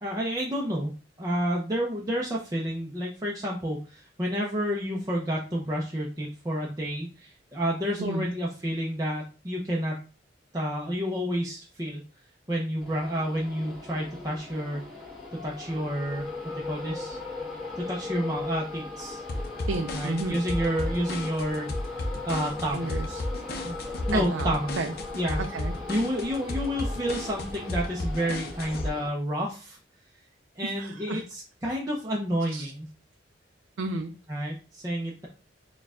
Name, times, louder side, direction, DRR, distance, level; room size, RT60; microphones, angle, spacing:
voice 1, 0.0-10.0 10.5-12.0 12.5-14.8 15.4-17.2 17.8-19.2 19.9-22.9 23.6-24.8 25.2-25.4 25.9-29.8 30.6-32.9 34.3-35.3, equal, 20° right, -4 dB, 0.6 m, -30 dB
sound 1, 12.8-29.1, left 3 dB, ahead, 1.2 m, -38 dB
sound 2, 19.3-28.9, left 1 dB, 55° left, 0.6 m, -33 dB
voice 2, 19.7-20.4 22.7-23.3 24.1-24.5 24.8-24.9 25.4-25.7 30.6-31.2 32.5-32.7 33.8-34.1, right 3 dB, 80° right, 5 dB, 0.4 m, -32 dB
4.5 x 2.3 x 3.5 m, 0.35 s
head